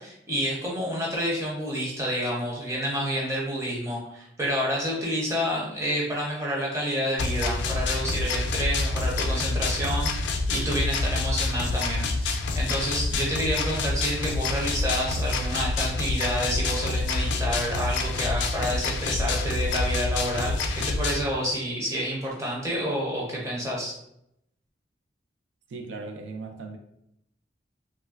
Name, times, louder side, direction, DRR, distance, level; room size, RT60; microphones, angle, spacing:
voice 1, 0.0-23.9, equal, 15° right, -4 dB, 0.6 m, -29 dB
sound 1, 7.2-21.2, left 3 dB, 75° left, 0.3 m, -27 dB
voice 2, 25.7-26.8, right 3 dB, 90° right, 4 dB, 0.4 m, -37 dB
3.0 x 2.3 x 2.4 m, 0.78 s
head